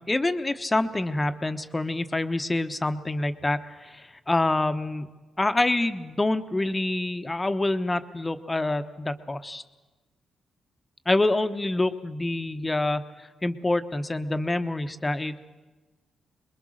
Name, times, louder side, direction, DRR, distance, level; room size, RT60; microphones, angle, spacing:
voice 1, 0.0-5.1 5.4-9.6 11.1-15.4, left 2 dB, 20° left, 9 dB, 1.2 m, -26 dB
23.5 x 21.0 x 6.5 m, 1.2 s
supercardioid pair, 55°, 0 cm